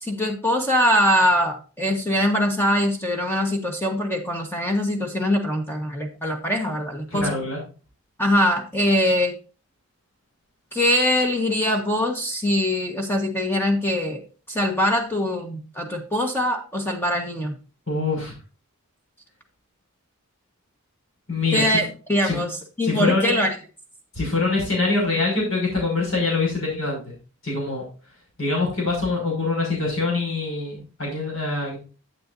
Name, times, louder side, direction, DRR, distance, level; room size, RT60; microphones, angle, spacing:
voice 1, 0.0-7.4 8.2-9.4 10.7-14.2 14.5-17.6 21.5-23.5, equal, 10° left, 1 dB, 1.3 m, -22 dB
voice 2, 7.1-7.6 17.9-18.3 21.3-21.8 22.2-22.4 22.8-23.3 24.1-27.0 27.4-27.8 28.4-31.8, left 3 dB, 65° left, -2 dB, 5.9 m, -24 dB
11.0 x 8.6 x 2.7 m, 0.35 s
head